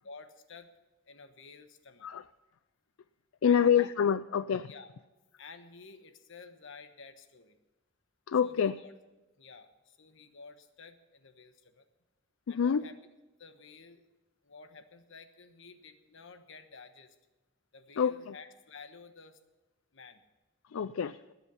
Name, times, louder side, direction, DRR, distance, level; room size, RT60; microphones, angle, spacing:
voice 1, 0.0-0.7 1.1-2.1 3.4-3.9 4.7-4.9 5.4-7.6 8.4-8.9 9.4-11.8 12.5-13.0 13.4-14.0 14.4-17.1 17.7-19.4 19.9-20.2, left 4 dB, 65° left, 9 dB, 1.2 m, -52 dB
voice 2, 3.4-4.7 8.3-8.8 12.5-12.8 18.0-18.3 20.7-21.3, left 7 dB, 80° left, 15 dB, 0.4 m, -27 dB
20.0 x 8.2 x 5.6 m, 1.1 s
head